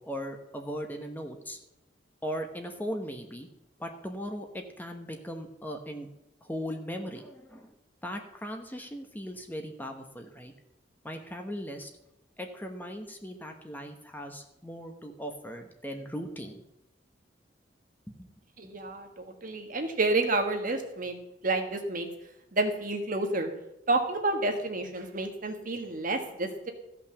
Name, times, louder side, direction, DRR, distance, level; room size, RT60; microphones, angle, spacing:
voice 1, 0.0-1.6 2.2-3.5 3.8-6.1 6.4-7.8 8.0-10.5 11.0-11.9 12.4-16.6 18.2-18.3, equal, 10° left, 4 dB, 1.0 m, -38 dB
voice 2, 18.6-21.2 21.4-22.1 22.5-23.5 23.9-26.7, right 2 dB, 50° right, 4 dB, 1.5 m, -29 dB
14.5 x 5.8 x 7.0 m, 0.87 s
head